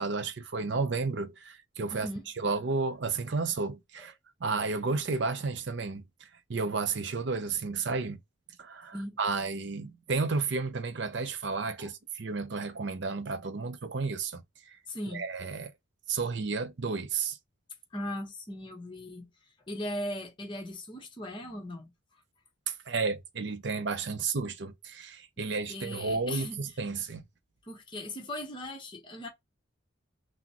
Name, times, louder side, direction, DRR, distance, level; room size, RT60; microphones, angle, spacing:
voice 1, 0.0-2.1 2.4-4.1 4.4-6.0 6.5-8.2 8.6-14.4 15.1-15.7 16.1-17.4 22.7-27.2, right 4 dB, 60° right, 0.6 m, -32 dB
voice 2, 1.9-2.3 4.0-4.1 8.9-9.2 11.8-11.9 14.9-15.3 17.9-19.3 19.7-21.9 25.4-26.6 27.6-29.3, left 1 dB, 25° left, 1.0 m, -38 dB
5.9 x 2.1 x 2.9 m
head